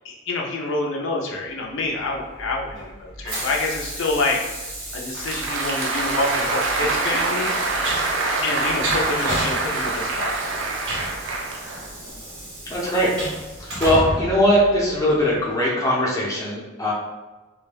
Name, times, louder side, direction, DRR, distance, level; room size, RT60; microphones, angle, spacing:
voice 1, 0.0-4.4 4.9-7.5 8.4-10.4, left 2 dB, 75° left, -1 dB, 0.4 m, -27 dB
Train, 2.1-15.3, right 1 dB, 90° right, 1.0 m, -33 dB
Applause, 5.0-12.1, right 3 dB, 70° right, 0.4 m, -25 dB
voice 2, 12.7-13.1 13.6-16.9, equal, 15° left, -6 dB, 0.5 m, -20 dB
2.2 x 2.1 x 3.2 m, 1.2 s
head